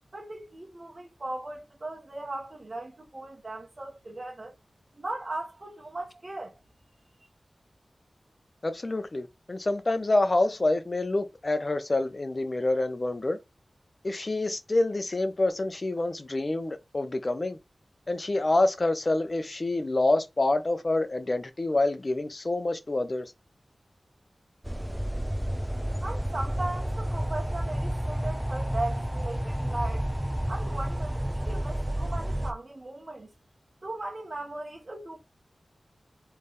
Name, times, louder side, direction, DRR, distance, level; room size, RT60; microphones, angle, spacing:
voice 1, 0.1-4.5 4.9-6.5 26.0-30.1 30.5-33.3 33.8-35.2, right 2 dB, 40° right, 1.3 m, -37 dB
voice 2, 8.6-13.4 14.0-17.6 18.1-23.3, left 2 dB, 40° left, 0.9 m, -27 dB
sound 1, 24.6-32.5, equal, 5° right, 0.7 m, -30 dB
4.1 x 3.4 x 3.5 m
wide cardioid pair, 85°, 0 cm